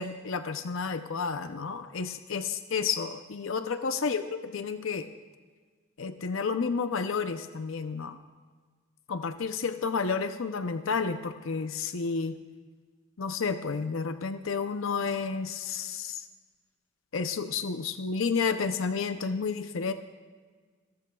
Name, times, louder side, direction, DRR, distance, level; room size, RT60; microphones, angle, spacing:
voice 1, 0.0-4.2 4.5-5.1 6.0-8.2 9.1-12.3 13.2-16.2 17.1-19.9, left 5 dB, 75° left, 9 dB, 0.6 m, -31 dB
28.5 x 13.5 x 2.3 m, 1.5 s
head